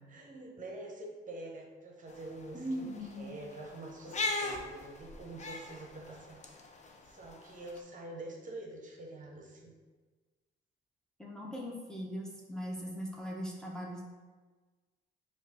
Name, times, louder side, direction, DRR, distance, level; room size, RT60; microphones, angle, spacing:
voice 1, 0.0-6.6 7.0-9.7, right 2 dB, 40° right, 0 dB, 0.8 m, -46 dB
sound 1, 2.1-7.8, left 3 dB, 35° left, 0.5 m, -40 dB
voice 2, 2.5-3.3 11.2-14.2, equal, 5° left, -3 dB, 0.7 m, -40 dB
4.6 x 2.4 x 4.1 m, 1.3 s
cardioid pair, 90°, 20 cm